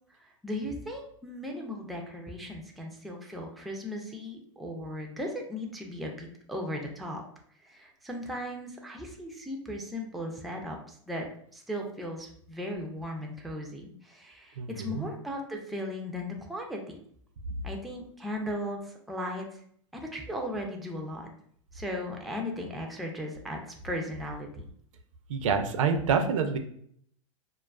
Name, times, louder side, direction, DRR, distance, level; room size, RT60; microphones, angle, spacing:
voice 1, 0.2-7.2 7.6-17.0 17.6-19.6 19.9-21.3 21.7-24.7, left 1 dB, ahead, 1 dB, 0.3 m, -37 dB
voice 2, 14.6-15.1 25.3-26.6, right 6 dB, 85° right, 6 dB, 0.5 m, -27 dB
2.3 x 2.3 x 2.2 m, 0.63 s
hypercardioid pair, 125°, 16 cm